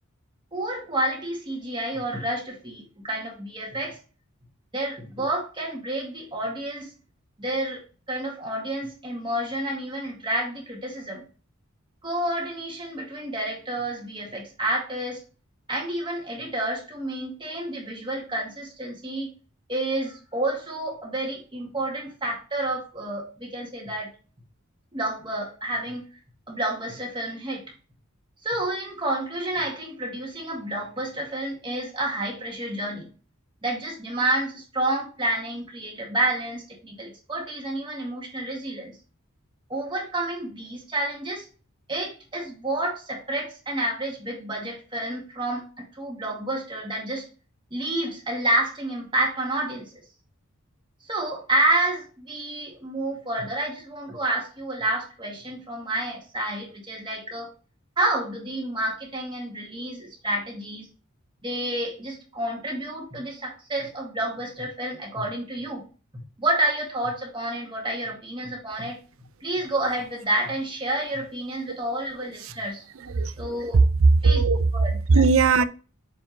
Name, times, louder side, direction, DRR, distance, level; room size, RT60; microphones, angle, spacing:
voice 1, 0.5-4.0 4.7-6.9 7.4-11.2 12.0-15.2 15.7-19.3 19.7-24.1 24.9-26.0 26.5-27.6 28.4-33.1 33.6-38.9 39.7-41.5 41.9-47.3 47.7-50.0 51.0-57.5 58.0-60.9 61.4-65.8 66.1-69.0 69.4-72.8 73.4-73.8 74.2-74.4 74.7-75.2, right 1 dB, 25° right, 2.1 m, -29 dB
voice 2, 73.0-73.3 74.2-74.7 75.1-75.6, right 4 dB, 65° right, 0.5 m, -19 dB
7.1 x 4.4 x 3.0 m
head